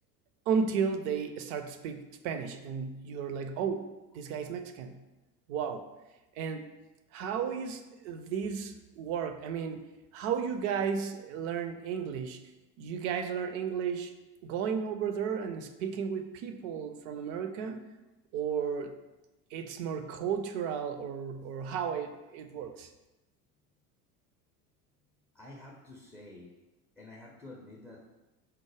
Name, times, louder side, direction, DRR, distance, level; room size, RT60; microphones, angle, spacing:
voice 1, 0.5-3.9 4.1-5.0 5.5-5.8 6.4-6.7 7.1-9.8 10.1-12.4 12.8-14.1 14.4-17.8 18.3-18.9 19.5-22.9, right 6 dB, 55° right, 8 dB, 0.5 m, -33 dB
voice 2, 25.3-26.5 27.0-28.0, left 2 dB, 5° left, -3 dB, 0.3 m, -49 dB
4.4 x 2.0 x 3.2 m, 1.0 s
hypercardioid pair, 80°, 48 cm